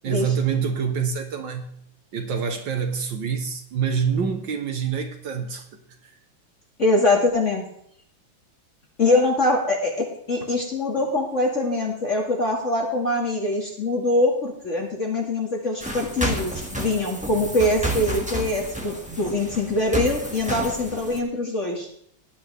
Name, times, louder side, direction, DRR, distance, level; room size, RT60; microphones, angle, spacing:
voice 1, 0.0-1.8 2.1-6.2, right 6 dB, 70° right, 6 dB, 1.8 m, -26 dB
voice 2, 6.8-7.6 9.0-21.9, left 2 dB, 40° left, -1 dB, 2.4 m, -23 dB
sound 1, 15.8-21.2, right 1 dB, 5° right, 1.7 m, -30 dB
18.0 x 12.0 x 3.4 m, 0.68 s
omnidirectional pair, 2.1 m